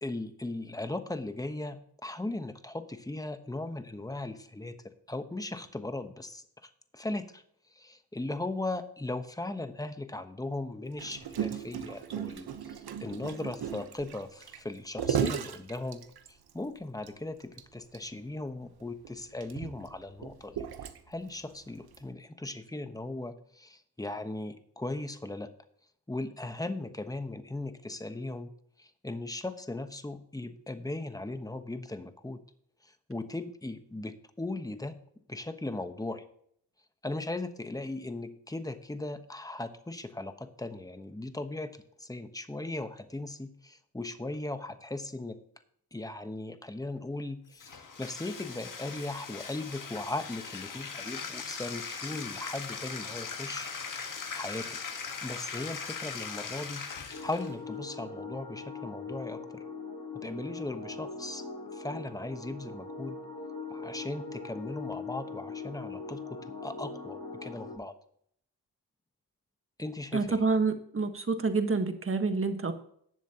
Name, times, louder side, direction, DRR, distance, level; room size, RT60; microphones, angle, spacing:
voice 1, 0.0-4.7 5.1-7.4 7.7-16.0 16.3-20.7 21.1-25.5 26.1-28.5 28.8-32.4 32.8-34.9 35.3-36.2 37.0-45.4 45.9-53.7 54.3-54.8 55.2-56.8 57.2-59.6 60.1-61.4 61.7-63.2 63.7-67.9 69.8-70.4, left 2 dB, 10° left, 9 dB, 1.1 m, -38 dB
Gurgling, 11.0-16.5 17.0-17.1 17.4-17.6 17.9-18.0 18.8-21.3 21.9-22.1, right 8 dB, 70° right, 1.0 m, -35 dB
Bathtub (filling or washing), 47.5-57.5, left 5 dB, 55° left, 1.6 m, -40 dB
sound 1, 57.1-67.8, left 4 dB, 85° left, 4.4 m, -41 dB
voice 2, 70.1-72.7, right 4 dB, 35° right, 7 dB, 1.4 m, -28 dB
18.0 x 7.2 x 2.9 m, 0.65 s
cardioid pair, 75°, 39 cm